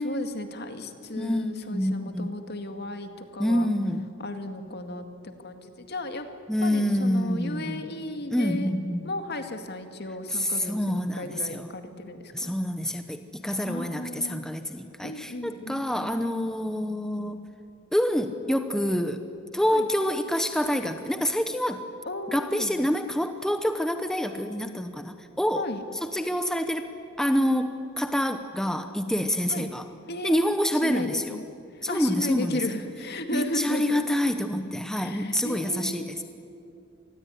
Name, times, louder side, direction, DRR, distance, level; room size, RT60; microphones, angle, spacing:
voice 1, 0.0-3.7 4.2-6.3 6.6-8.7 9.0-12.5 13.6-14.5 15.0-16.2 19.7-19.9 22.1-22.9 25.5-25.8 29.5-29.7 30.1-30.5 30.8-31.4 31.7-34.1 34.9-36.2, left 1 dB, 55° left, 7 dB, 2.1 m, -35 dB
voice 2, 1.2-2.3 3.4-4.1 6.5-7.8 8.3-9.1 10.3-11.7 12.3-17.5 17.9-19.2 19.5-21.8 22.3-25.7 26.0-26.9 27.2-29.8 30.2-31.4 31.8-32.6 33.3-36.2, equal, 5° left, 8 dB, 0.9 m, -27 dB
27.0 x 20.0 x 10.0 m, 2.5 s
head